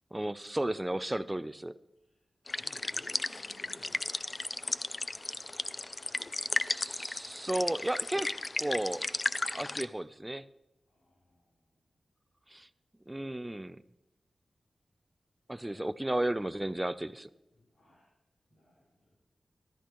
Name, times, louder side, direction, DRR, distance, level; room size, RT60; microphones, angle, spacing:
voice 1, 0.1-1.7 6.6-8.3 8.6-9.1 9.5-10.5 12.5-12.7 13.1-13.8 15.5-17.3, right 1 dB, 15° right, 15 dB, 0.5 m, -34 dB
voice 2, 2.0-2.3 2.6-4.1 10.9-11.9 15.5-16.0 17.5-18.1 18.5-19.2, left 1 dB, 85° left, -7 dB, 3.6 m, -58 dB
sound 1, 2.5-9.9, left 2 dB, 40° left, 0.4 m, -35 dB
14.0 x 13.0 x 3.1 m, 0.92 s
cardioid pair, 50°, 0 cm